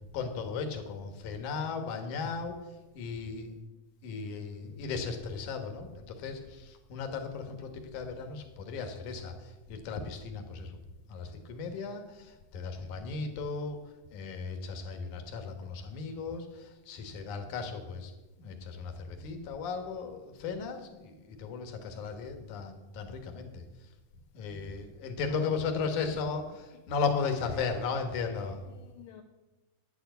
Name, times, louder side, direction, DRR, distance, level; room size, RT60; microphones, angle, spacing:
voice 1, 0.1-2.6 2.9-3.5 4.0-10.8 11.1-13.8 14.1-18.1 18.4-23.6 24.3-28.6, left 5 dB, 65° left, 6 dB, 2.8 m, -36 dB
voice 2, 25.3-26.2 26.5-27.0 28.2-29.2, left 10 dB, 80° left, 3 dB, 2.3 m, -54 dB
9.6 x 9.2 x 8.0 m, 1.1 s
omnidirectional pair, 3.9 m